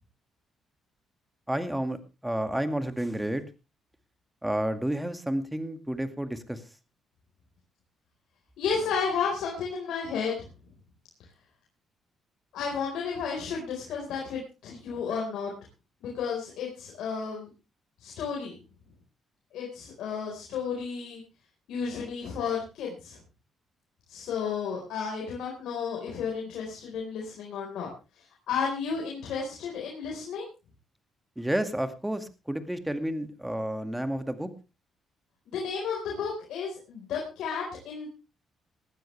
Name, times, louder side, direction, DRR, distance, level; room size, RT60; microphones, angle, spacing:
voice 1, 1.5-2.0 2.2-3.4 4.4-6.6 31.4-34.5, right 1 dB, 5° right, 9 dB, 2.0 m, -30 dB
voice 2, 8.6-10.5 12.5-15.5 16.0-17.5 18.0-18.6 19.5-21.2 21.7-23.2 24.1-27.9 28.5-30.4 35.5-38.1, left 6 dB, 80° left, -1 dB, 4.5 m, -32 dB
18.5 x 12.5 x 3.4 m, 0.30 s
cardioid pair, 90°, 0 cm